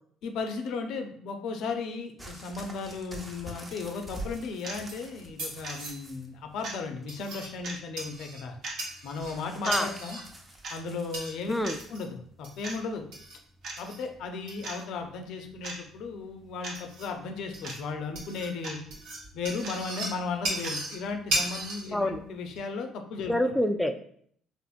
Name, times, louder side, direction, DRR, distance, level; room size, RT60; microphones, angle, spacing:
voice 1, 0.2-8.6 9.0-10.2 10.7-11.5 11.9-13.0 13.8-18.8 19.3-23.3, left 4 dB, 75° left, 5 dB, 0.5 m, -35 dB
sound 1, 2.2-6.3 6.6-7.2 9.2-11.9 12.8-12.9, right 1 dB, 20° right, 0.7 m, -46 dB
sound 2, 3.0-22.6, right 1 dB, 85° right, 1.1 m, -39 dB
sound 3, 4.6-4.8 5.6-5.8 6.6-6.8 7.6-7.8 8.6-8.8 9.6-9.8 10.6-10.8 11.6-11.8 12.6-12.8 13.6-13.8 14.6-14.8 15.6-15.8 16.6-16.8 17.6-17.8 18.6-18.8 19.6-19.8 20.6-20.8, right 2 dB, 60° right, 0.7 m, -37 dB
voice 2, 21.9-22.2 23.3-24.1, left 1 dB, 5° left, 7 dB, 0.3 m, -27 dB
3.5 x 2.5 x 2.4 m, 0.62 s
supercardioid pair, 80°, 0 cm